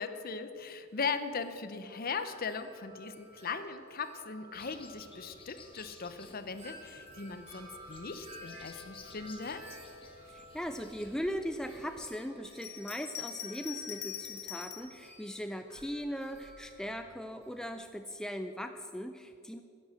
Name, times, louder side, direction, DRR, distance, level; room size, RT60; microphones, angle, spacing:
voice 1, 0.0-9.6, left 5 dB, 40° left, 10 dB, 0.7 m, -39 dB
Wind chime, 0.9-17.7, equal, 30° right, 3.5 m, -54 dB
sound 1, 4.5-12.1, left 4 dB, 25° left, 1.1 m, -55 dB
voice 2, 10.2-19.6, equal, 5° left, 7 dB, 0.3 m, -39 dB
Bell, 12.5-15.0 15.7-16.6, left 10 dB, 85° left, 1.4 m, -43 dB
11.0 x 9.8 x 7.5 m, 2.6 s
head